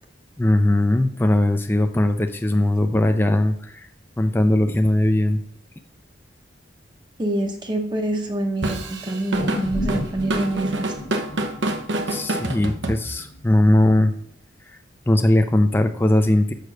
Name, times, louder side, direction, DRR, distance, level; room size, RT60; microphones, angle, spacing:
voice 1, 0.4-3.9 4.2-5.4 12.1-14.1 15.1-16.5, left 1 dB, 10° left, 6 dB, 0.4 m, -19 dB
voice 2, 7.2-10.9, right 1 dB, 25° right, 3 dB, 0.8 m, -26 dB
Drum kit / Drum, 8.6-13.4, right 1 dB, 90° right, 1.0 m, -27 dB
sound 1, 9.3-13.8 14.2-14.3, left 2 dB, 80° left, 1.5 m, -33 dB
6.6 x 6.0 x 6.3 m, 0.65 s
head